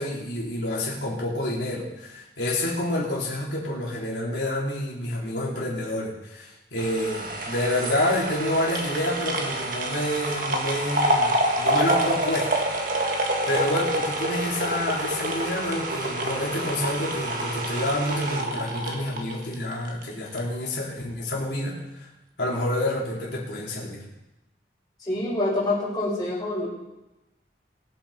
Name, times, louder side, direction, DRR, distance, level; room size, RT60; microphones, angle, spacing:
voice 1, 0.0-11.3 11.6-12.7 13.5-22.1 22.4-24.0, left 1 dB, 85° left, -6 dB, 3.9 m, -28 dB
sound 1, 6.8-20.0 20.4-20.5, right 1 dB, 50° right, 1.8 m, -27 dB
voice 2, 25.1-26.7, left 2 dB, 25° left, -7 dB, 5.6 m, -26 dB
22.5 x 7.7 x 4.4 m, 0.97 s
head